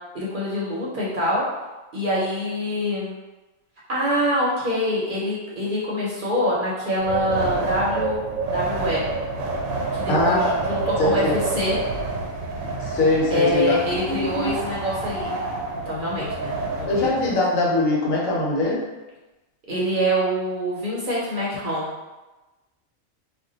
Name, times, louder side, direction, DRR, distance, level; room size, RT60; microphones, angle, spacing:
voice 1, 0.1-1.4 1.9-3.1 3.9-9.0 9.9-11.8 13.3-15.3 15.8-17.1 19.7-21.9, equal, 50° right, -6 dB, 0.7 m, -25 dB
Wind, 7.0-17.4, right 3 dB, 85° right, 1.0 m, -28 dB
voice 2, 10.1-10.5 11.0-11.3 12.8-13.8 14.1-14.6 16.9-18.9, left 2 dB, 90° left, -3 dB, 1.2 m, -22 dB
2.6 x 2.1 x 3.8 m, 1.1 s
omnidirectional pair, 1.4 m